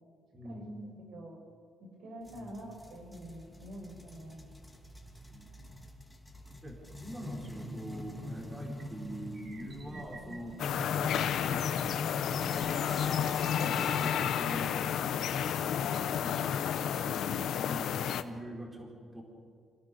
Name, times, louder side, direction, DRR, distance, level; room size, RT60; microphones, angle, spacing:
voice 1, 0.3-1.0 2.3-2.5 5.3-5.5 6.6-12.1 13.2-19.2, equal, 20° right, 0 dB, 4.1 m, -44 dB
voice 2, 1.1-1.4 1.8-4.4 13.5-14.3, right 1 dB, 70° right, 1 dB, 6.6 m, -46 dB
sound 1, 2.2-14.4, left 1 dB, 5° left, 3.0 m, -45 dB
sound 2, 8.8-8.9 9.3-10.4 10.9-11.9 12.4-13.5, right 2 dB, 45° right, 5.8 m, -48 dB
sound 3, 10.6-18.2, left 9 dB, 75° left, 1.0 m, -31 dB
27.0 x 18.0 x 6.8 m, 2.2 s
cardioid pair, 90°, 0 cm